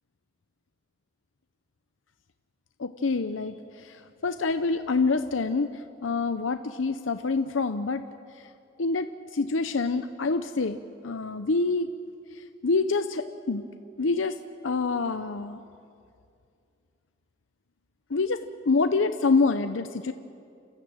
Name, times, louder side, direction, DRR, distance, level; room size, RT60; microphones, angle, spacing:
voice 1, 2.8-8.0 8.3-8.5 8.8-10.8 11.0-11.9 12.3-13.6 14.0-14.4 14.6-15.6 18.1-20.1, left 4 dB, 90° left, 9 dB, 0.7 m, -27 dB
30.0 x 14.0 x 8.9 m, 2.5 s
head